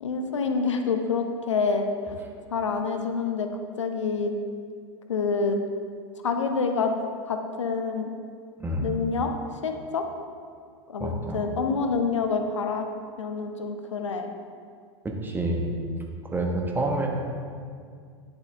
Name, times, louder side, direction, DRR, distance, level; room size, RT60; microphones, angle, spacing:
voice 1, 0.0-2.2 2.5-3.5 3.8-4.3 5.1-5.6 6.2-6.9 7.2-8.1 8.8-9.3 9.6-10.1 10.9-12.9 13.2-14.3, left 4 dB, 80° left, 5 dB, 0.8 m, -27 dB
voice 2, 11.0-11.4 15.0-15.8 16.3-17.1, right 1 dB, 15° right, 1 dB, 1.3 m, -28 dB
10.5 x 7.0 x 3.4 m, 2.2 s
figure-of-eight pair, 85°, 15 cm